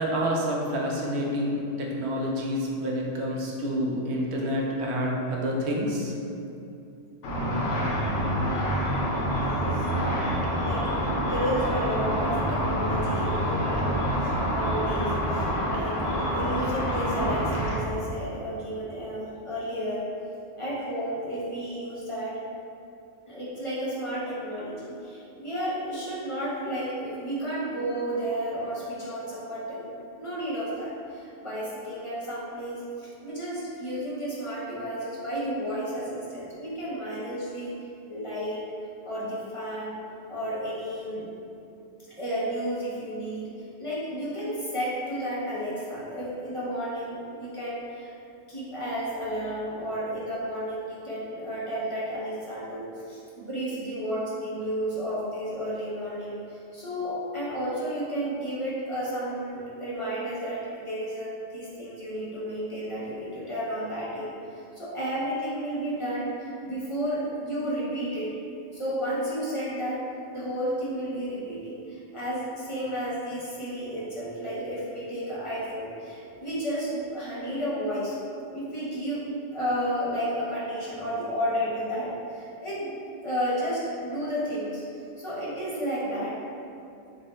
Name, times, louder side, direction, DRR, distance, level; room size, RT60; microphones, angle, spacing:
voice 1, 0.0-6.1, equal, 65° right, -2 dB, 0.8 m, -28 dB
Car / Traffic noise roadway noise / Engine, 7.2-17.7, equal, 75° left, 0.9 m, -27 dB
voice 2, 9.3-20.0 20.6-22.4 23.3-37.7 38.1-38.7 39.0-40.0 40.3-41.3 42.2-43.5 43.8-48.1 48.5-68.3 68.7-70.1 70.3-78.1 78.5-79.2 79.5-83.0 83.2-84.8 85.2-86.4, equal, 35° left, -9 dB, 0.5 m, -32 dB
3.5 x 2.1 x 4.0 m, 2.7 s
omnidirectional pair, 1.3 m